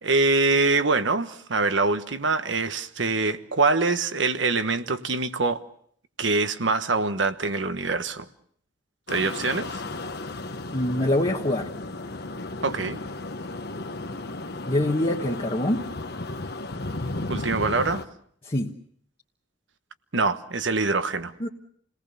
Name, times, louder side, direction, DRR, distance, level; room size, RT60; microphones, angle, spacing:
voice 1, 0.0-5.6 6.2-8.2 9.1-9.7 12.6-13.0 17.3-18.0 20.1-21.3, right 3 dB, 75° right, 1.2 m, -24 dB
sound 1, 9.1-18.1, left 2 dB, 60° left, 1.3 m, -34 dB
voice 2, 10.7-11.7 14.6-15.9 18.4-18.7 21.4-21.5, left 1 dB, 30° left, 1.3 m, -24 dB
28.5 x 19.0 x 6.9 m
head